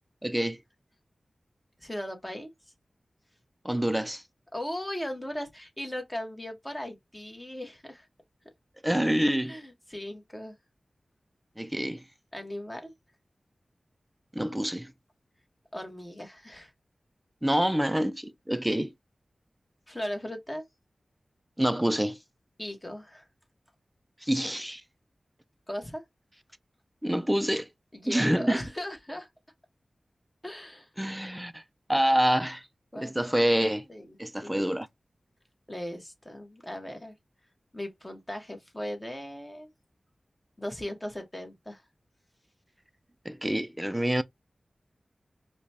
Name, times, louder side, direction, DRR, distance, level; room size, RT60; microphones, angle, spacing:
voice 1, 0.2-0.6 3.6-4.2 8.8-9.5 11.6-12.0 14.4-14.9 17.4-18.9 21.6-22.2 24.2-24.8 27.0-27.7 28.1-28.6 31.0-31.6 31.9-32.6 33.0-33.8 34.2-34.9 43.3-44.2, equal, 5° right, 0.4 m, -26 dB
voice 2, 1.8-2.5 4.5-8.1 9.5-10.5 12.3-12.9 15.7-16.7 19.9-20.6 22.6-23.3 25.7-26.0 27.9-29.3 30.4-30.9 32.9-33.1 33.9-34.6 35.7-37.1 37.7-39.7 40.6-41.8, left 1 dB, 15° left, 1.2 m, -38 dB
4.9 x 2.2 x 2.8 m
wide cardioid pair, 90°, 0 cm